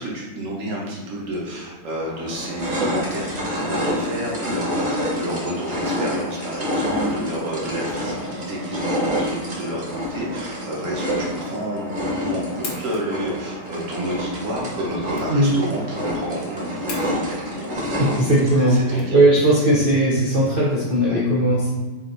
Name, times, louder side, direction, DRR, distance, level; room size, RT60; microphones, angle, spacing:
voice 1, 0.0-18.1 18.6-19.3 21.0-21.2, right 1 dB, 50° right, -3 dB, 1.3 m, -30 dB
sound 1, 1.3-1.4 2.0-18.8, equal, 30° right, 1.1 m, -28 dB
sound 2, 12.6-19.7, left 4 dB, 55° left, 0.7 m, -41 dB
voice 2, 18.0-21.7, right 1 dB, 75° right, -4 dB, 0.4 m, -18 dB
4.6 x 2.7 x 3.8 m, 1.3 s
omnidirectional pair, 2.0 m